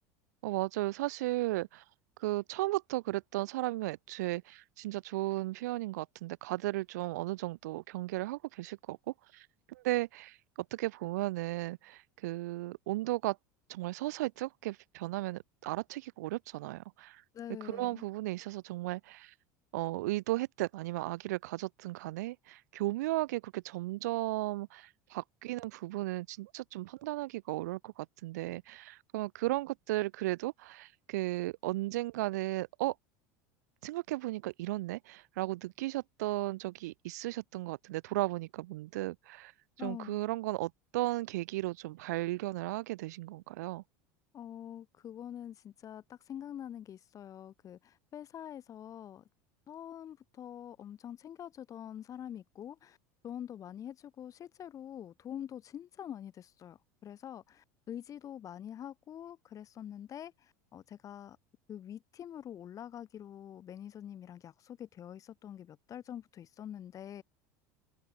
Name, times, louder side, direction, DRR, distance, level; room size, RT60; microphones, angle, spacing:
voice 1, 0.4-1.8 2.2-10.4 10.7-13.4 13.7-17.2 17.6-19.3 19.7-32.9 33.8-39.5 39.8-43.8, right 18 dB, 80° right, 2.1 m, -35 dB
voice 2, 17.3-18.0 39.8-40.2 44.3-49.2 49.7-53.0 53.2-61.4 61.7-67.2, left 10 dB, 40° left, 7.2 m, -45 dB
open air
supercardioid pair, 105°, 9 cm